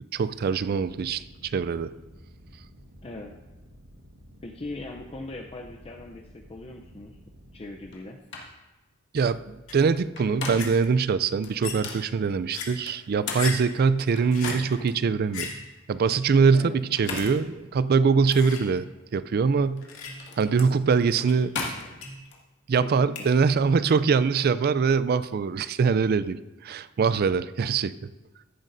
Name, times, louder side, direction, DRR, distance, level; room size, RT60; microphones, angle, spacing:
voice 1, 0.1-1.9 9.1-15.5 15.9-19.8 20.4-21.5 22.7-27.9, right 5 dB, 50° right, 15 dB, 0.4 m, -23 dB
sound 1, 0.7-7.9, equal, 85° right, 1.6 m, -51 dB
voice 2, 3.0-3.3 4.4-7.2 7.5-8.2 16.5-16.8 22.8-23.3, left 2 dB, 30° left, 2 dB, 0.5 m, -40 dB
sound 2, 7.9-8.0 8.3-8.6 10.0-10.9 11.4-12.1 12.9-14.9 15.4-15.5 16.8-17.5 18.3-18.4 19.7-22.4, left 3 dB, 60° left, 1.7 m, -37 dB
sound 3, 9.7-9.8 10.6-10.7 11.6-12.0 12.5-12.7 13.4-13.8 14.3-14.5 15.3-15.7 17.0-17.2 18.3-18.8 19.8-20.3 21.3-21.4 21.6-21.7 22.0-22.3 23.1-23.2, left 5 dB, 90° left, 2.1 m, -36 dB
14.5 x 10.5 x 2.6 m, 1.1 s
head